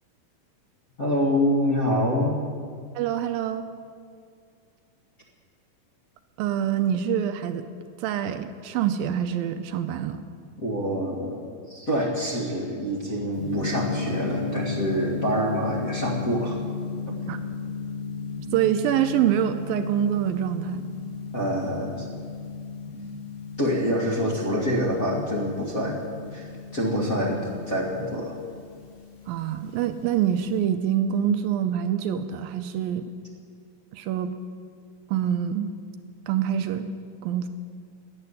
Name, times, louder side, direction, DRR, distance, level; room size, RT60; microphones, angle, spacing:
voice 1, 1.0-2.4 10.6-11.4 11.7-16.6 17.1-17.2 21.3-22.1 23.6-26.0 26.3-28.4, equal, 35° left, -4 dB, 1.6 m, -26 dB
voice 2, 3.0-3.7 6.4-7.7 8.0-10.2 17.3-17.4 18.5-20.9 29.3-33.0 33.9-34.3 35.1-35.7 36.3-36.9 37.2-37.5, right 10 dB, 80° right, 9 dB, 2.3 m, -25 dB
Gong, 13.4-30.6, left 4 dB, 70° left, 5.4 m, -35 dB
12.5 x 12.0 x 9.8 m, 2.2 s
omnidirectional pair, 4.4 m